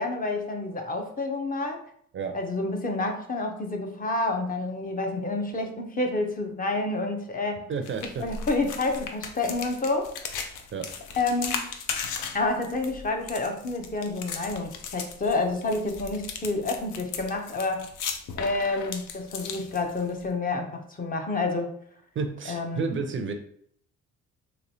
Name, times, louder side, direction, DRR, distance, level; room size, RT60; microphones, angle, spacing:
voice 1, 0.0-1.8 2.3-7.7 8.2-10.1 11.2-11.7 12.3-17.9 18.4-21.7 22.5-22.8, left 2 dB, 30° left, 4 dB, 0.6 m, -29 dB
voice 2, 7.7-8.3 10.7-11.0 22.1-23.3, right 5 dB, 45° right, 7 dB, 0.4 m, -31 dB
sound 1, 7.8-20.3, left 6 dB, 80° left, 0.5 m, -37 dB
3.2 x 3.0 x 2.7 m, 0.64 s
cardioid pair, 90°, 30 cm